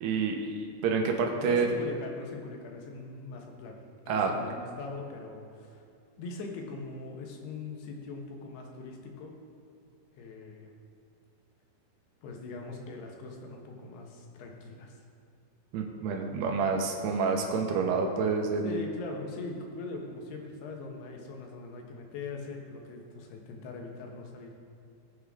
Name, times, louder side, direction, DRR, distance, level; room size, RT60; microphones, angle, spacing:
voice 1, 0.0-1.7 4.1-4.3 15.7-18.8, right 5 dB, 85° right, 2 dB, 3.2 m, -28 dB
voice 2, 1.3-3.8 4.1-5.9 6.2-9.3 10.2-10.7 12.2-15.0 18.6-24.5, left 3 dB, 80° left, 1 dB, 3.4 m, -41 dB
20.0 x 7.9 x 3.8 m, 2.4 s
omnidirectional pair, 4.6 m